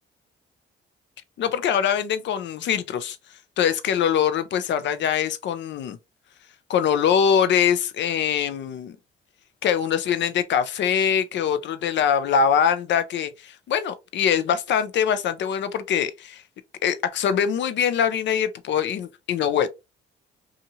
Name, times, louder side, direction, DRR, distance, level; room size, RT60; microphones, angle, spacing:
voice 1, 1.4-3.2 3.6-6.0 6.7-9.0 9.6-16.4 16.8-19.7, left 8 dB, 65° left, 0.5 m, -23 dB
2.8 x 2.5 x 2.7 m
cardioid pair, 90°, 20 cm